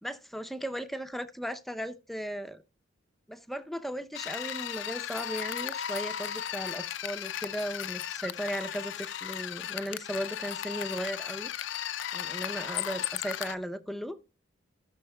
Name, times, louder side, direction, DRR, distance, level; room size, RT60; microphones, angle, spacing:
voice 1, 0.0-2.6 3.3-11.5 12.1-14.2, equal, ahead, 0.6 m, -36 dB
sound 1, 4.1-13.5, left 10 dB, 65° left, 0.5 m, -36 dB
17.0 x 6.2 x 2.2 m
head